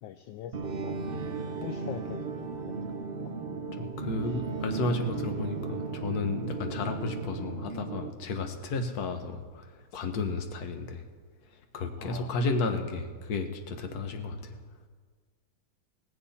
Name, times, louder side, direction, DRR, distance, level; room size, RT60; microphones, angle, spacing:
voice 1, 0.0-0.6 0.8-1.0 1.6-2.5 2.9-3.1 12.0-12.4, left 10 dB, 75° left, 9 dB, 1.3 m, -42 dB
sound 1, 0.5-8.1, right 4 dB, 75° right, 0.5 m, -35 dB
voice 2, 3.7-11.0 11.7-14.6, left 3 dB, 50° left, 6 dB, 1.5 m, -33 dB
17.5 x 16.0 x 4.3 m, 1.5 s
omnidirectional pair, 2.3 m